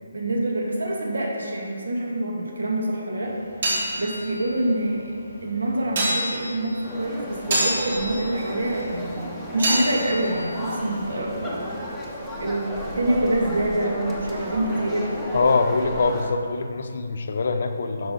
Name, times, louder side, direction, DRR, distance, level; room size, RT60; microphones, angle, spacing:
voice 1, 0.1-3.4 4.0-5.2 5.4-9.1 9.5-11.6 12.4-15.1, right 1 dB, 90° right, -1 dB, 2.1 m, -26 dB
sound 1, 3.2-11.8, right 1 dB, 45° right, 2.3 m, -30 dB
sound 2, 6.8-16.3, equal, ahead, 0.7 m, -34 dB
voice 2, 15.3-18.1, left 3 dB, 45° left, 6 dB, 0.6 m, -23 dB
9.4 x 6.1 x 5.3 m, 2.3 s
hypercardioid pair, 180°, 0 cm